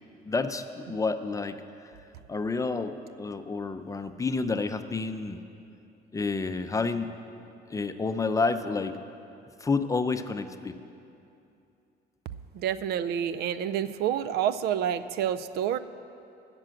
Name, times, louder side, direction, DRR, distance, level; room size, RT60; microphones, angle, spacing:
voice 1, 0.3-1.6 2.3-5.4 6.1-7.1 7.7-9.0 9.6-10.8, left 4 dB, 20° left, 9 dB, 0.6 m, -29 dB
voice 2, 12.5-15.8, right 9 dB, 70° right, 14 dB, 0.5 m, -28 dB
15.0 x 6.1 x 7.8 m, 2.7 s
cardioid pair, 110°, 17 cm